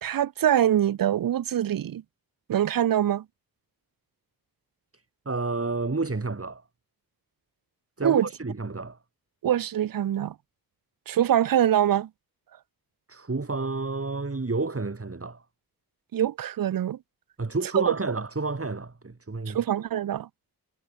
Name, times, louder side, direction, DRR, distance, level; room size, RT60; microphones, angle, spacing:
voice 1, 0.0-2.0 2.5-3.2 8.0-8.3 9.4-10.3 11.1-12.1 16.1-17.0 17.7-17.9 19.5-20.3, right 11 dB, 60° right, 0.5 m, -24 dB
voice 2, 5.3-6.6 8.0-9.0 13.1-15.4 17.4-19.6, right 3 dB, 35° right, 3.9 m, -30 dB
wide cardioid pair, 65°, 38 cm